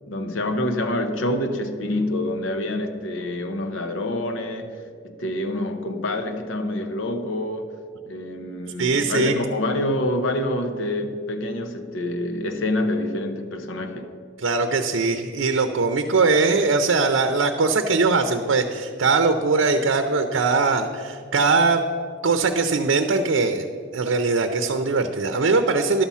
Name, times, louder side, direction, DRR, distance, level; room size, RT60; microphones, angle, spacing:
voice 1, 0.1-4.8 5.0-7.7 8.1-14.1, left 1 dB, 90° left, 7 dB, 0.8 m, -26 dB
voice 2, 8.8-9.3 14.4-21.8 22.2-23.7 23.9-26.0, right 4 dB, 85° right, 7 dB, 0.6 m, -21 dB
11.5 x 7.2 x 5.6 m, 2.2 s
head